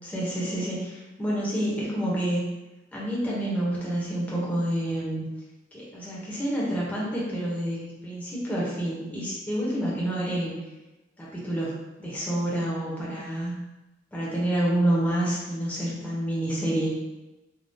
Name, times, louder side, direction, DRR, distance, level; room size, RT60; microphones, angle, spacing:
voice 1, 0.0-2.4 2.9-5.3 5.7-10.5 11.2-11.7 12.0-13.6 14.1-16.9, right 1 dB, 10° left, -6 dB, 0.7 m, -28 dB
3.5 x 2.2 x 2.6 m, 1.0 s
head